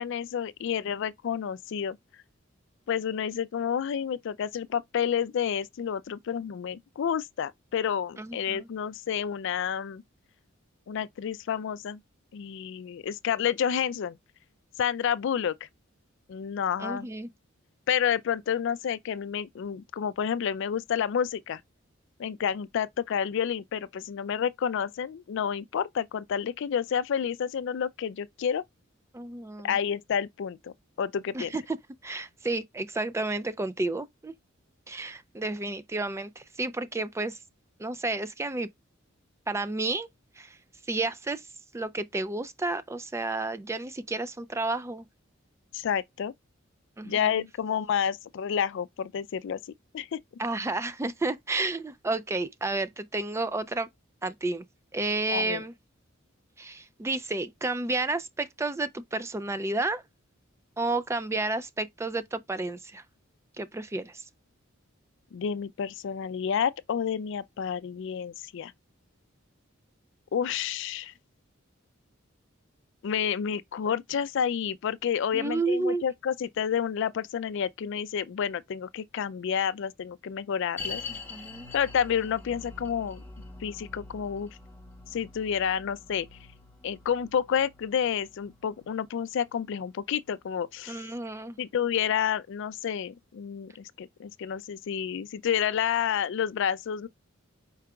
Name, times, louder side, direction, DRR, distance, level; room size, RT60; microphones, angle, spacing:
voice 1, 0.0-2.0 2.9-10.0 10.9-12.0 12.3-14.2 14.8-15.5 16.3-17.1 17.9-21.6 22.2-28.6 29.6-30.7 31.0-31.5 45.7-46.3 47.0-49.6 49.9-50.2 55.3-55.6 65.3-68.7 70.3-71.1 73.0-81.0 81.7-83.2 83.6-84.6 85.1-86.3 86.8-91.0 91.6-97.1, left 8 dB, 65° left, 0.4 m, -29 dB
voice 2, 8.2-8.7 16.8-17.3 29.1-29.8 31.3-31.8 32.0-34.3 34.9-37.4 37.8-38.7 39.5-40.1 40.4-40.6 40.9-41.4 41.7-45.1 47.0-47.4 50.4-53.9 54.2-54.6 54.9-55.7 56.6-60.0 60.8-63.0 63.6-64.2 75.3-76.0 81.3-81.7 90.9-91.6, right 2 dB, 15° right, 0.3 m, -31 dB
sound 1, 80.8-92.1 92.3-92.4 93.1-93.2, left 4 dB, 10° left, 1.0 m, -45 dB
4.8 x 4.6 x 2.3 m
head